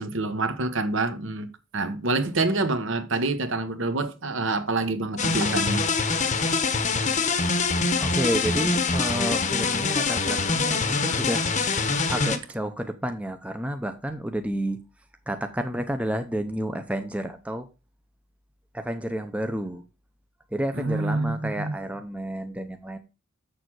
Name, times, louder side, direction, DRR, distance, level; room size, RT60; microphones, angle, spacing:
voice 1, 0.0-1.5 1.7-5.8 20.7-21.7, right 3 dB, 60° right, 1.1 m, -27 dB
sound 1, 5.2-12.4, left 4 dB, 35° left, 0.9 m, -24 dB
voice 2, 8.0-11.4 12.1-14.8 15.3-17.7 18.7-19.8 20.5-23.0, right 1 dB, 5° right, 0.6 m, -30 dB
7.3 x 6.7 x 4.6 m
head